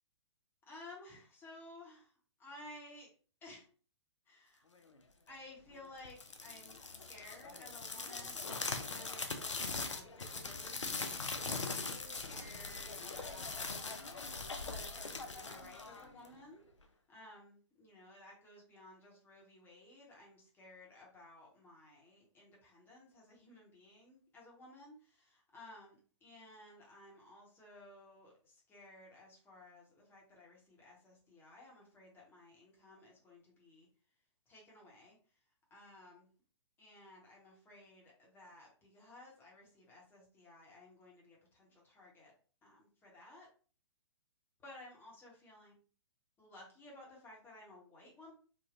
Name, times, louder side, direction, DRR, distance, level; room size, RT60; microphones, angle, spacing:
voice 1, 0.7-2.1 2.4-3.1 3.4-3.7 4.3-4.6 5.3-6.8 7.1-14.2 14.5-16.7 17.1-33.9 34.5-35.2 35.7-36.3 36.8-42.3 42.6-43.5 44.6-45.7 46.4-48.3, left 1 dB, 15° left, -3 dB, 1.0 m, -56 dB
sound 1, 6.1-16.4, left 3 dB, 80° left, 0.5 m, -41 dB
3.4 x 2.2 x 2.5 m, 0.39 s
figure-of-eight pair, 120°, 15 cm